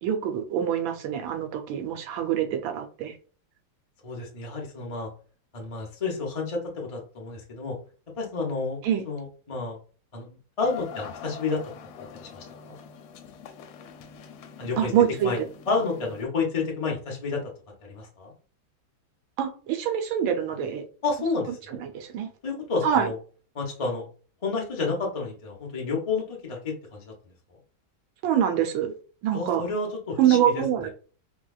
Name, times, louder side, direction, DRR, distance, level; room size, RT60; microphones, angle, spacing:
voice 1, 0.0-3.1 8.8-9.0 14.8-15.4 19.4-20.8 21.8-22.3 22.8-23.1 28.2-28.9 29.2-29.6 30.2-30.9, right 9 dB, 80° right, 6 dB, 1.5 m, -25 dB
voice 2, 4.0-5.1 5.5-7.8 8.2-9.8 10.1-11.6 12.2-12.8 14.6-14.9 15.2-15.4 15.7-17.4 17.8-18.3 21.0-21.8 22.4-23.1 23.5-24.0 24.4-27.1 29.3-30.9, left 4 dB, 50° left, -1 dB, 0.4 m, -30 dB
sound 1, 10.6-16.2, left 8 dB, 80° left, 1.3 m, -43 dB
4.4 x 2.3 x 2.3 m, 0.39 s
omnidirectional pair, 2.1 m